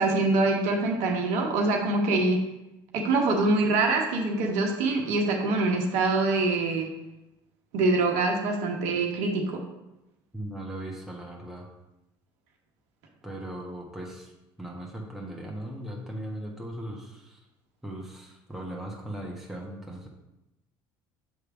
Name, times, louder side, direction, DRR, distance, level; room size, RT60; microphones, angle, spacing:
voice 1, 0.0-2.4 2.9-6.9 7.7-9.6, right 3 dB, 65° right, 1 dB, 1.1 m, -24 dB
voice 2, 10.3-11.7 13.2-14.3 14.6-17.4 17.8-20.1, right 1 dB, 5° right, -3 dB, 1.4 m, -38 dB
7.2 x 3.3 x 4.8 m, 0.93 s
hypercardioid pair, 65°, 13 cm